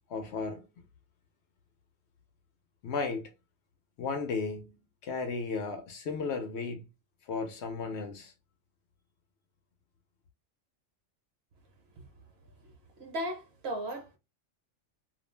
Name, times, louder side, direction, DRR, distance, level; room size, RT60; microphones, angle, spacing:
voice 1, 0.1-0.7 2.8-3.3 4.0-6.8 7.2-8.3, left 4 dB, 65° left, 0.8 m, -35 dB
voice 2, 12.6-14.2, right 1 dB, 55° right, 0.9 m, -37 dB
2.4 x 2.0 x 3.1 m
omnidirectional pair, 1.3 m